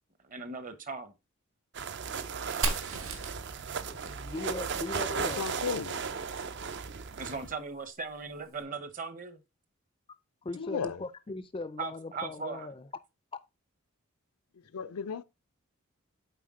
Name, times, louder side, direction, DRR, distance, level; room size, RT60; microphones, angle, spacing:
voice 1, 0.2-1.1 7.1-9.4 11.8-12.7, right 4 dB, 35° right, 0.8 m, -38 dB
sound 1, 1.7-7.5, right 6 dB, 50° right, 0.5 m, -36 dB
Fire, 2.6-6.3, right 3 dB, 70° right, 1.5 m, -38 dB
voice 2, 3.9-5.5 10.4-12.9, left 2 dB, 25° left, 0.3 m, -39 dB
voice 3, 5.1-6.1 10.5-11.0 14.7-15.2, left 6 dB, 90° left, 0.5 m, -35 dB
7.6 x 4.5 x 3.6 m
head